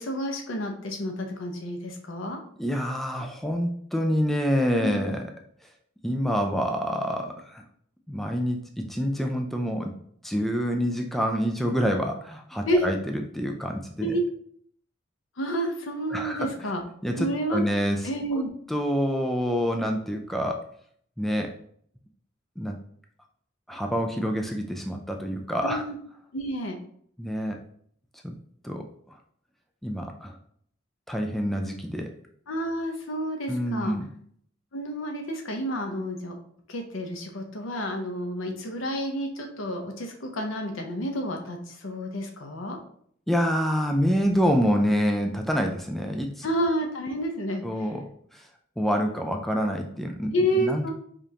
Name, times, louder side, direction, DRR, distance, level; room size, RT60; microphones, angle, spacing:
voice 1, 0.0-2.4 4.8-5.0 12.7-12.8 14.0-14.2 15.4-16.8 17.2-17.6 18.0-18.5 25.6-25.9 26.3-26.8 32.5-33.9 34.7-36.4 36.7-42.8 46.4-47.6 50.3-50.9, equal, 75° left, 3 dB, 0.7 m, -29 dB
voice 2, 2.6-5.3 6.0-7.6 8.1-10.0 10.2-14.2 16.1-16.5 17.0-18.1 18.7-20.6 21.2-21.6 22.6-22.8 23.7-25.9 27.2-27.6 28.2-28.3 28.6-29.2 29.8-30.4 31.1-32.1 33.5-34.1 43.3-46.5 47.6-48.5 48.8-50.9, equal, ahead, 3 dB, 0.3 m, -27 dB
5.0 x 2.5 x 2.8 m, 0.63 s
head